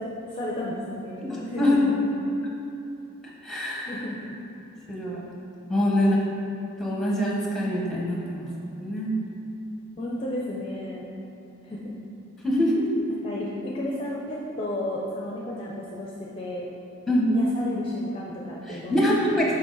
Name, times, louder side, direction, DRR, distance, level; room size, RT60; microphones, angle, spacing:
voice 1, 0.0-1.9 3.9-4.2 5.8-6.3 10.0-11.1 11.6-11.9 13.1-16.7 17.3-19.1, left 1 dB, 25° left, -4 dB, 0.5 m, -33 dB
voice 2, 1.2-1.8 3.4-4.0 4.9-5.2 5.7-6.2 6.8-9.1 12.4-12.8 17.1-17.3 18.7-19.4, left 1 dB, ahead, -4 dB, 0.9 m, -24 dB
6.1 x 5.4 x 3.9 m, 2.8 s
head